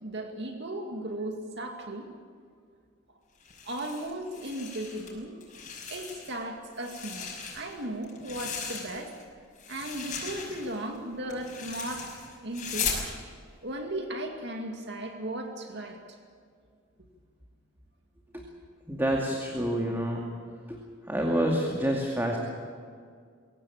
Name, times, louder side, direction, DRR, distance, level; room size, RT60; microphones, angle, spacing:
voice 1, 0.0-2.1 3.6-5.4 5.9-9.1 9.7-12.9 13.6-16.2, right 1 dB, 60° right, 3 dB, 2.2 m, -36 dB
sound 1, 3.4-5.1 5.4-6.4 6.7-9.2 9.6-13.1, left 6 dB, 40° left, 6.3 m, -38 dB
voice 2, 18.9-20.2 20.7-20.8 21.1-22.4, equal, 10° right, 0 dB, 2.4 m, -28 dB
23.5 x 17.0 x 8.6 m, 2.1 s
head